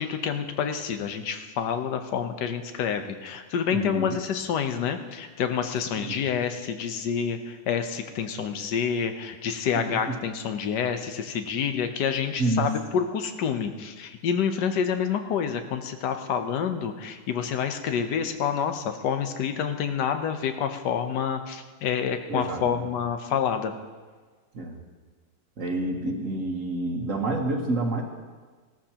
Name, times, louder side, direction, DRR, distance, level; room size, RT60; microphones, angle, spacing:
voice 1, 0.0-23.7, left 7 dB, 65° left, 7 dB, 1.4 m, -28 dB
voice 2, 3.7-4.2 6.0-6.1 10.1-10.2 12.4-12.7 22.3-22.8 24.5-24.8 25.6-28.0, right 2 dB, 45° right, 2 dB, 1.4 m, -28 dB
19.0 x 13.5 x 2.9 m, 1.4 s
omnidirectional pair, 2.1 m